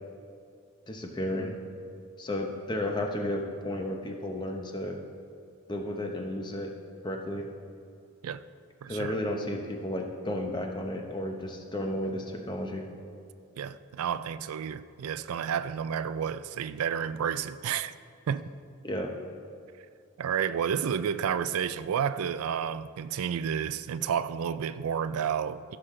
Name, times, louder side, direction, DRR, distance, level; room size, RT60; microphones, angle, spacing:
voice 1, 0.9-1.6 2.2-5.0 5.7-6.7 7.0-7.5 8.9-12.9 18.8-19.1, left 1 dB, 20° left, 0.8 m, -33 dB
voice 2, 8.8-9.1 13.6-17.9 18.3-18.5 20.2-25.8, right 8 dB, 85° right, 0.4 m, -31 dB
15.5 x 6.6 x 3.7 m
head